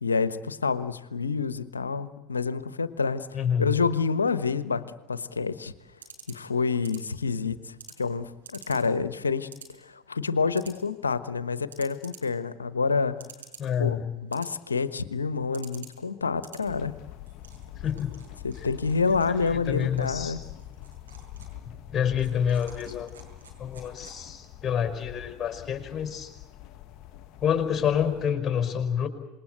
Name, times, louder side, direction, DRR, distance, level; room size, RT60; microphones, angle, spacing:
voice 1, 0.0-3.3 3.6-4.8 5.1-5.7 6.3-9.5 9.8-13.2 13.8-16.9 18.4-20.4, left 5 dB, 90° left, 14 dB, 1.1 m, -28 dB
voice 2, 3.3-3.8 13.6-14.1 17.8-18.2 18.6-18.7 19.5-20.4 21.7-23.1 23.6-26.3 27.4-29.1, left 8 dB, 30° left, 7 dB, 5.3 m, -28 dB
sound 1, 5.2-24.5, right 5 dB, 85° right, 5.6 m, -52 dB
sound 2, 16.7-28.3, left 13 dB, 50° left, 1.6 m, -45 dB
27.0 x 21.5 x 8.0 m, 1.1 s
hypercardioid pair, 80°, 0 cm